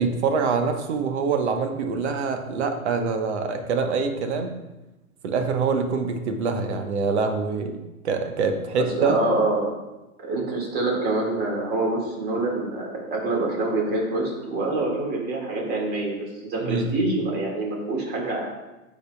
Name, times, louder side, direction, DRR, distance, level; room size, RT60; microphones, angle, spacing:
voice 1, 0.0-4.5 5.2-7.7 8.0-9.2 16.6-16.9, right 5 dB, 50° right, 5 dB, 1.1 m, -25 dB
voice 2, 8.8-9.7 10.2-16.1 16.4-18.5, right 2 dB, 20° right, -1 dB, 2.0 m, -26 dB
14.5 x 5.2 x 2.3 m, 1.0 s
hypercardioid pair, 125°, 43 cm